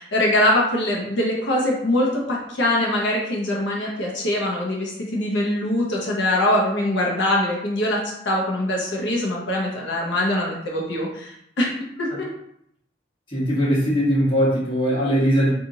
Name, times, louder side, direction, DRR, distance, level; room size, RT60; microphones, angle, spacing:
voice 1, 0.0-11.7 12.0-12.3, left 1 dB, 90° left, -2 dB, 0.8 m, -23 dB
voice 2, 13.3-15.5, equal, 30° left, -7 dB, 1.2 m, -20 dB
2.9 x 2.5 x 3.7 m, 0.73 s
head